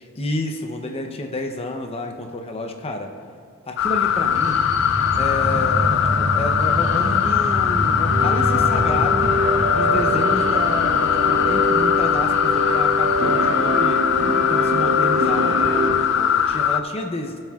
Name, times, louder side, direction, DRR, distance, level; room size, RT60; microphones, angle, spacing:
voice 1, 0.2-3.1 3.6-4.6 5.2-9.4 9.7-14.1 14.5-17.4, left 1 dB, 25° left, 4 dB, 0.7 m, -30 dB
sound 1, 3.8-16.8, left 8 dB, 60° left, 0.4 m, -20 dB
sound 2, 4.0-13.8, equal, 35° right, 1.6 m, -28 dB
sound 3, 8.1-15.9, equal, 60° right, 1.4 m, -24 dB
18.0 x 7.7 x 2.4 m, 2.3 s
head